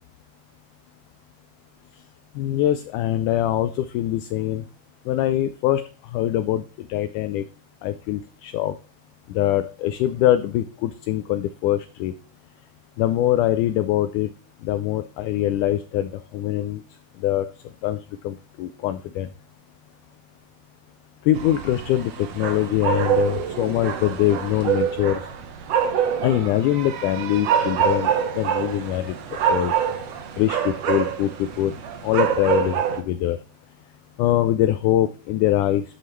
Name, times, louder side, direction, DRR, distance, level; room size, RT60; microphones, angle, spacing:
voice 1, 2.4-4.6 5.1-5.8 6.1-7.4 7.8-8.8 9.3-12.1 13.0-14.3 14.6-16.8 17.2-17.5 17.8-18.0 18.2-19.3 21.3-25.3 26.2-29.2 29.5-29.7 30.4-31.8 32.0-33.4 34.2-35.8, left 13 dB, 85° left, 12 dB, 1.8 m, -23 dB
sound 1, 21.3-33.0, right 8 dB, 65° right, 1.6 m, -25 dB
10.5 x 7.7 x 3.1 m, 0.36 s
omnidirectional pair, 4.1 m